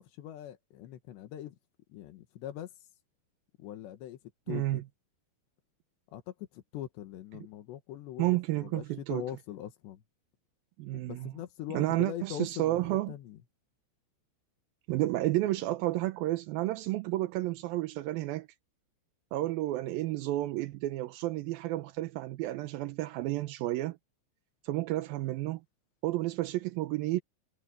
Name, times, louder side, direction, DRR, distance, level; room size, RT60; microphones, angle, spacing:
voice 1, 0.0-1.6 1.9-2.7 3.6-4.2 4.5-4.8 6.1-10.0 10.9-13.4, left 12 dB, 90° left, 3.8 m, -42 dB
voice 2, 4.5-4.8 8.2-9.2 10.8-11.3 11.7-13.1 14.9-18.5 19.3-24.0 24.6-25.6 26.0-27.2, right 17 dB, 75° right, 2.3 m, -31 dB
omnidirectional pair, 4.8 m